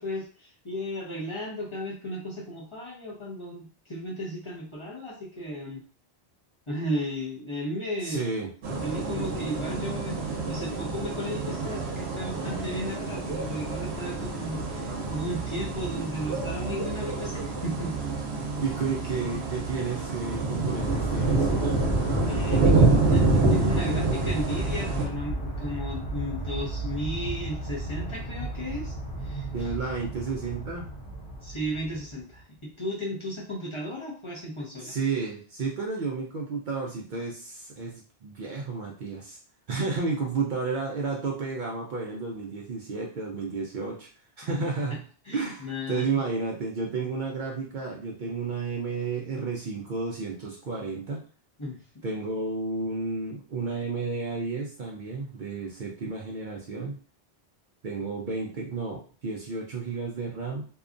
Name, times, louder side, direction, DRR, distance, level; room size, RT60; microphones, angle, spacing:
voice 1, 0.0-5.8 6.7-8.3 8.8-10.2 10.5-18.0 22.3-28.9 29.2-29.7 31.4-34.9 44.6-44.7 45.3-46.1 51.6-51.8, equal, 30° left, -5 dB, 0.7 m, -34 dB
voice 2, 8.0-8.5 18.6-21.5 29.5-30.9 34.8-39.4 39.7-44.1 44.4-45.0 45.3-51.2 52.0-57.0 57.8-60.6, right 4 dB, 55° right, -1 dB, 0.6 m, -32 dB
sound 1, 8.6-25.1, right 3 dB, 80° right, 0.9 m, -27 dB
sound 2, 20.8-32.4, right 2 dB, 80° left, 1.2 m, -34 dB
2.8 x 2.3 x 2.5 m, 0.40 s
omnidirectional pair, 1.1 m